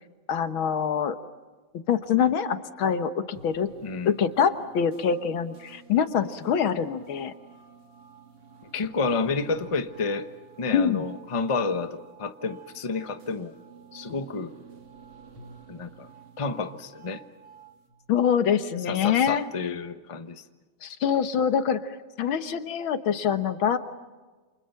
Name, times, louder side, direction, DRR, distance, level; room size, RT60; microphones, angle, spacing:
voice 1, 0.3-1.2 1.9-3.7 4.1-7.3 10.7-11.1 18.1-19.5 20.8-21.8 22.2-23.8, left 7 dB, 80° left, 10 dB, 2.1 m, -24 dB
sound 1, 3.3-17.9, right 6 dB, 85° right, 3.9 m, -50 dB
voice 2, 3.8-4.1 8.7-10.3 10.6-13.5 13.9-14.5 15.7-16.1 16.4-17.2 18.9-20.4, left 4 dB, 20° left, 9 dB, 0.9 m, -30 dB
29.0 x 28.0 x 5.8 m, 1.3 s
omnidirectional pair, 2.2 m